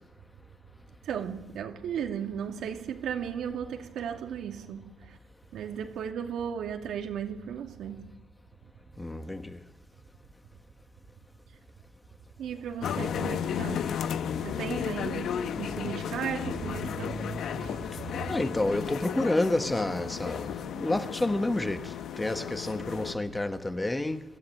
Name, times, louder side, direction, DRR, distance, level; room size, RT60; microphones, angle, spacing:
voice 1, 1.0-5.2 5.5-8.0 12.4-13.8 14.4-17.8, right 8 dB, 75° right, 2.4 m, -35 dB
voice 2, 9.0-9.6 15.0-15.1 18.2-24.2, left 2 dB, 15° left, 1.3 m, -29 dB
sound 1, 12.8-23.1, left 8 dB, 70° left, 0.9 m, -34 dB
25.0 x 13.5 x 8.9 m
cardioid pair, 90°, 0 cm